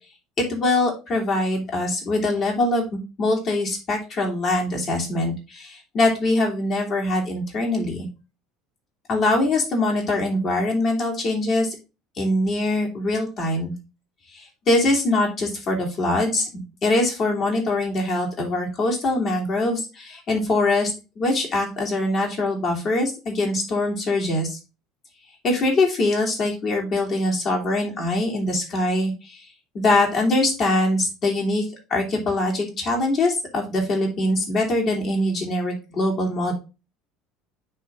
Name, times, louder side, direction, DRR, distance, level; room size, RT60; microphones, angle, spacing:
voice 1, 0.4-8.1 9.1-11.7 12.2-13.7 14.3-16.5 16.8-20.9 21.2-24.6 25.4-29.4 29.7-31.6 31.9-36.5, left 2 dB, 40° left, 0 dB, 2.8 m, -23 dB
9.7 x 3.5 x 3.6 m, 0.28 s
figure-of-eight pair, 65°, 0 cm